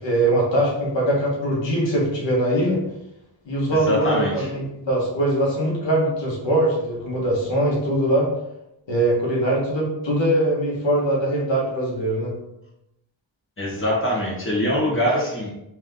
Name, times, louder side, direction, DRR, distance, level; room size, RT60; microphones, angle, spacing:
voice 1, 0.0-2.8 3.5-8.3 8.9-12.3, right 1 dB, 75° left, -4 dB, 1.3 m, -22 dB
voice 2, 3.7-4.5 13.6-15.5, left 1 dB, 25° left, -5 dB, 1.4 m, -23 dB
3.3 x 3.0 x 3.9 m, 0.87 s
wide cardioid pair, 105°, 45 cm